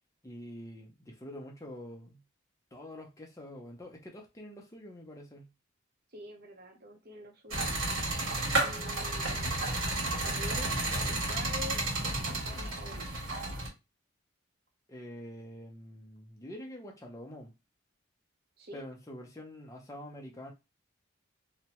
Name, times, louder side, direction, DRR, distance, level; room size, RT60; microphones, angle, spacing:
voice 1, 0.2-2.2 2.7-5.5 14.9-17.5 18.7-20.5, equal, 15° left, 0.6 m, -46 dB
voice 2, 6.1-7.7 8.6-9.7 10.2-10.7 11.1-13.2 18.6-18.8, equal, 50° right, 0.8 m, -46 dB
sound 1, 7.5-13.7, right 2 dB, 85° right, 1.5 m, -32 dB
2.8 x 2.2 x 2.9 m
head